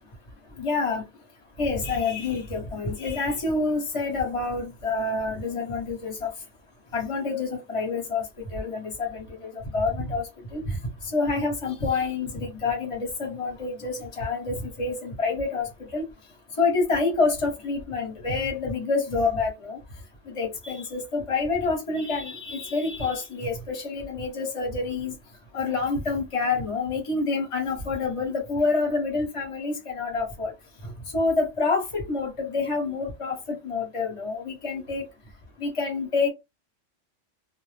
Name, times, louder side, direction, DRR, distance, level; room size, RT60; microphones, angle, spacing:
voice 1, 0.6-1.0 1.6-6.3 6.9-10.8 11.1-16.0 16.6-19.8 20.3-25.1 25.5-30.5 31.1-35.0 35.6-36.3, left 4 dB, 30° left, 0.9 m, -27 dB
2.1 x 2.0 x 3.2 m
omnidirectional pair, 1.2 m